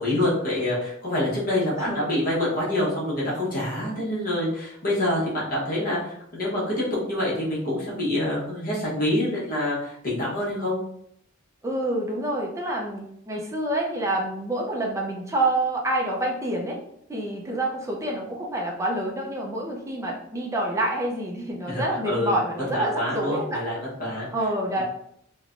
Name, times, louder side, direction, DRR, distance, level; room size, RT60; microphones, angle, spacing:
voice 1, 0.0-10.7 21.7-22.4 22.7-24.3 24.8-24.9, left 1 dB, 45° left, -6 dB, 0.9 m, -26 dB
voice 2, 1.8-2.1 11.6-16.8 17.1-23.6 24.3-24.8, right 1 dB, 15° right, -1 dB, 0.4 m, -27 dB
3.1 x 2.1 x 2.4 m, 0.72 s
head